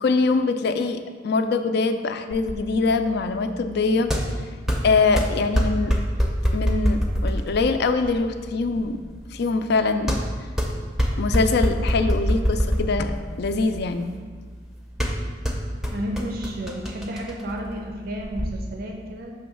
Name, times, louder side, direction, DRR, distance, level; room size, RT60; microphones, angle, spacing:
voice 1, 0.0-4.1 4.8-5.9 6.5-9.0 9.3-10.2 11.2-14.1, left 4 dB, 60° left, 8 dB, 0.4 m, -23 dB
sound 1, 2.3-18.5, equal, ahead, 0.6 m, -26 dB
voice 2, 15.9-19.3, equal, 55° right, 1 dB, 0.6 m, -32 dB
6.3 x 3.1 x 5.8 m, 1.5 s
head